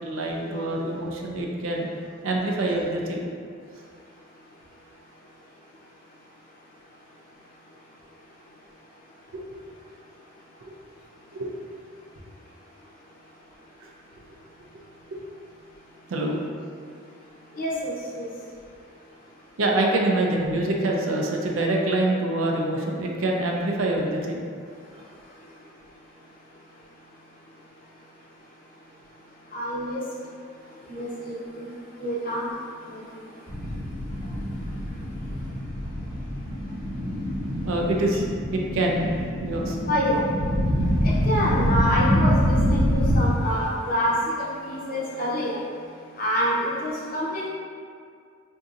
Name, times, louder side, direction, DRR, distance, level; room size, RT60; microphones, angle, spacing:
voice 1, 0.0-1.9 2.2-3.3 9.3-9.5 11.3-11.5 16.1-16.4 19.6-24.4 37.6-39.1 39.4-39.8 40.7-40.9, right 1 dB, 80° right, 0 dB, 0.4 m, -25 dB
voice 2, 17.6-18.3 29.5-30.0 30.9-31.4 32.0-32.4 32.9-33.0 39.9-40.2 41.0-45.6 46.2-47.5, equal, 40° left, -6 dB, 0.6 m, -27 dB
sound 1, 33.5-43.2, equal, 25° right, 1.0 m, -25 dB
3.8 x 2.6 x 2.4 m, 2.2 s
head